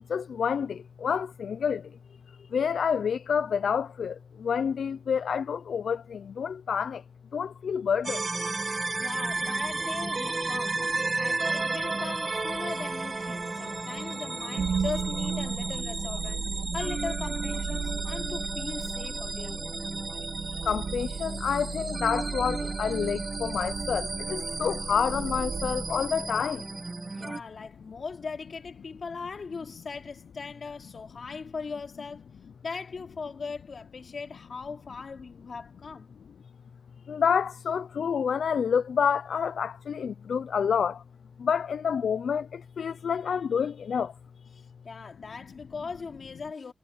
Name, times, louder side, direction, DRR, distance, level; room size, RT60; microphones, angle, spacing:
voice 1, 0.1-1.9 2.5-7.0 7.3-8.2 20.6-26.6 37.1-41.0 41.4-44.1, left 7 dB, 70° left, 0.4 m, -28 dB
sound 1, 8.0-27.4, right 3 dB, 30° right, 1.2 m, -33 dB
voice 2, 9.0-19.6 27.2-32.3 32.6-36.1 44.8-46.7, left 4 dB, 45° left, 3.1 m, -39 dB
sound 2, 14.6-26.7, right 6 dB, 70° right, 2.2 m, -35 dB
wide cardioid pair, 165°, 0 cm